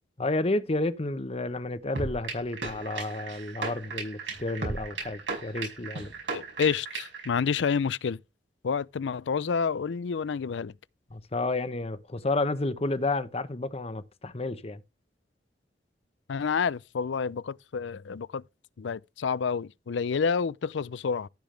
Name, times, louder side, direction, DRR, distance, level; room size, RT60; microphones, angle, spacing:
voice 1, 0.2-6.1 11.1-14.8, left 2 dB, 35° left, 0.9 m, -31 dB
sound 1, 2.0-7.3, right 3 dB, 90° right, 5.7 m, -35 dB
voice 2, 6.3-8.2 8.6-10.7 16.3-18.4 18.8-21.3, left 6 dB, 85° left, 0.4 m, -29 dB
14.0 x 7.1 x 3.3 m
head